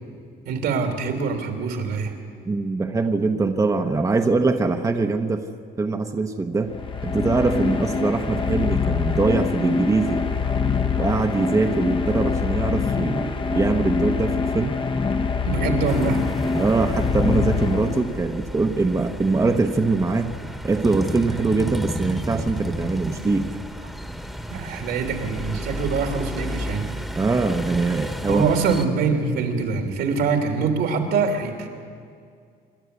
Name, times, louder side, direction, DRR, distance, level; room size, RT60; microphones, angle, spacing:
voice 1, 0.4-2.1 15.5-16.5 24.5-26.9 28.3-31.7, right 5 dB, 80° right, 4 dB, 3.0 m, -24 dB
voice 2, 2.4-5.4 5.8-6.7 7.0-10.2 11.0-14.8 16.6-20.3 20.6-23.5 27.1-28.4, right 3 dB, 20° right, 5 dB, 1.0 m, -22 dB
sound 1, 6.6-18.4, left 5 dB, 30° left, 1.1 m, -25 dB
sound 2, 15.8-28.8, equal, ahead, 1.4 m, -32 dB
27.0 x 12.0 x 8.3 m, 2.2 s
cardioid pair, 110°, 17 cm